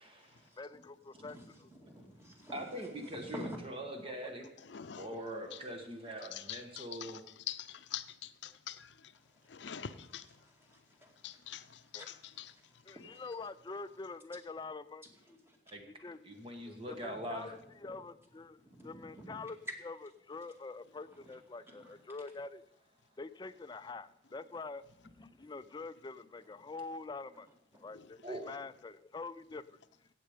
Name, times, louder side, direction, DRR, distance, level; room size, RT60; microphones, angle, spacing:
voice 1, 0.6-1.7 4.1-4.3 11.9-12.1 12.9-15.0 16.0-16.2 16.6-19.6 19.8-19.9 20.3-22.6 23.2-27.5 27.7-29.8, left 3 dB, 25° left, 0.4 m, -45 dB
voice 2, 1.1-3.6 9.2-9.7 10.7-11.3 12.5-12.6 12.9-13.3 15.2-15.8 17.0-17.2 17.5-18.0 18.6-19.5 21.0-22.0 26.4-26.6 27.3-27.4 27.7-28.0, equal, 15° right, 2.2 m, -51 dB
voice 3, 2.5-4.6 5.0-7.2 15.7-15.8 16.2-17.5 28.2-28.5, right 1 dB, 30° right, 1.4 m, -42 dB
voice 4, 4.6-5.6 6.3-9.1 9.5-10.3 11.2-12.5 12.9-13.4 27.9-28.4, left 10 dB, 80° left, 0.6 m, -46 dB
16.5 x 7.7 x 5.1 m
head